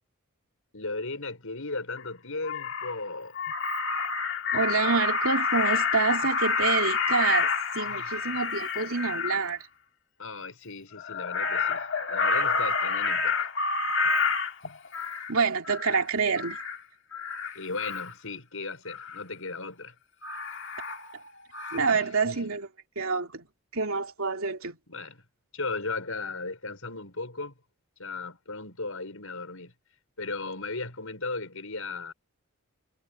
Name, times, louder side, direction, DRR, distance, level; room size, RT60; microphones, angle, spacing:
voice 1, 0.7-3.4 7.9-8.3 10.2-13.5 17.5-19.9 21.9-22.5 24.9-25.2 25.5-27.6 28.0-29.7 30.2-32.1, left 3 dB, 70° left, 5.4 m, -36 dB
Crow, 2.0-2.1 2.4-3.0 3.3-9.4 11.0-15.3 15.6-16.0 16.4-16.8 17.1-18.1 18.9-19.2 20.2-21.3 21.5-21.8, left 5 dB, 55° left, 2.1 m, -29 dB
voice 2, 4.5-7.5 7.7-9.7 15.3-16.6 21.7-22.7 23.0-23.5 23.7-24.8, right 4 dB, 70° right, 2.7 m, -27 dB
head